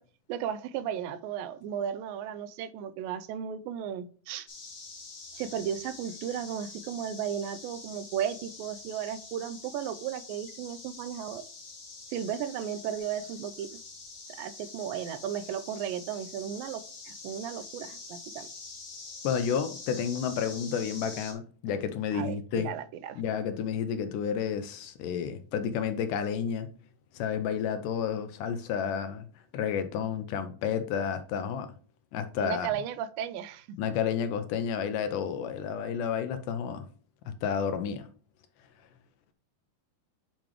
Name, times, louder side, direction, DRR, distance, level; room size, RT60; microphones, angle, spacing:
voice 1, 0.3-4.5 5.3-11.4 12.1-13.8 14.3-18.5 22.1-23.2 32.4-33.8, right 9 dB, 85° right, 2.2 m, -35 dB
sound 1, 4.5-21.3, left 3 dB, 40° left, 1.3 m, -46 dB
voice 2, 19.2-22.7 23.2-26.7 27.1-29.3 29.5-31.7 32.1-32.7 33.8-36.8 37.3-38.1, left 7 dB, 80° left, 2.0 m, -31 dB
8.9 x 5.1 x 3.0 m
omnidirectional pair, 4.1 m